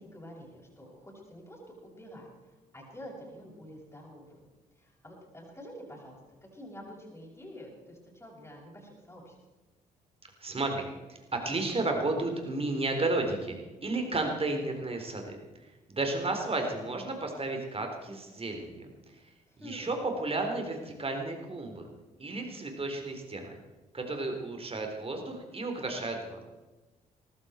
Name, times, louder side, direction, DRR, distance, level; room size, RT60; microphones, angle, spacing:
voice 1, 0.0-4.4 4.7-9.4 19.5-20.0, equal, 15° left, -6 dB, 6.3 m, -48 dB
voice 2, 10.4-13.6 13.8-15.4 15.9-19.2 19.6-21.9 22.2-23.5 23.9-26.4, right 2 dB, 30° right, 4 dB, 4.1 m, -33 dB
19.0 x 15.5 x 4.6 m, 1.1 s
figure-of-eight pair, 40°, 19 cm